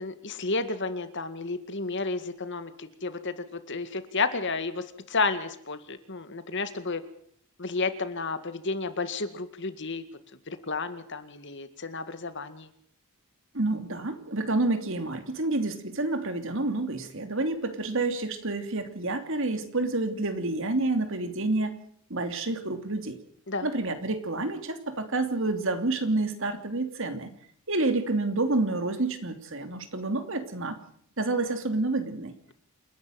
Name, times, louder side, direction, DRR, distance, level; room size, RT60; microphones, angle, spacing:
voice 1, 0.0-7.0 7.6-10.0 10.5-12.7 23.5-23.7, left 3 dB, 55° left, 11 dB, 2.0 m, -32 dB
voice 2, 13.5-21.8 22.1-23.2 23.6-27.3 27.7-30.8 31.2-32.3, right 2 dB, 60° right, 8 dB, 2.9 m, -29 dB
28.5 x 11.5 x 9.3 m, 0.64 s
head